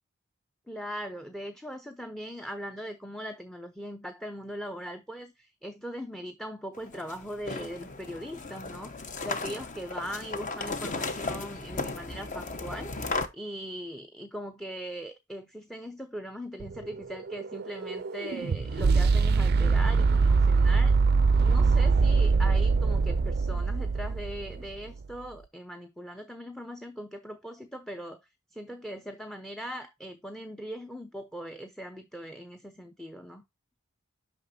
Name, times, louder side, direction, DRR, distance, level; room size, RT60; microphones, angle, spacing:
voice 1, 0.7-21.0 21.4-28.2 28.5-33.4, equal, ahead, 0.6 m, -40 dB
sound 1, 6.7-13.3, left 3 dB, 35° left, 1.0 m, -35 dB
sound 2, 16.6-24.7, right 4 dB, 45° right, 0.4 m, -23 dB
9.1 x 6.0 x 2.7 m
head